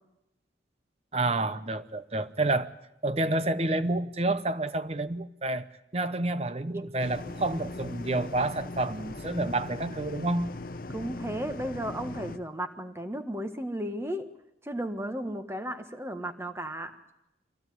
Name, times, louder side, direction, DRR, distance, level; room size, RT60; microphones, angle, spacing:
voice 1, 1.1-2.7 3.0-5.7 5.9-10.5, right 2 dB, 35° right, 0.8 m, -29 dB
sound 1, 7.0-12.4, left 2 dB, 50° left, 0.9 m, -39 dB
voice 2, 10.9-14.3 14.6-17.0, right 1 dB, 15° right, 1.4 m, -34 dB
24.0 x 16.0 x 9.4 m
head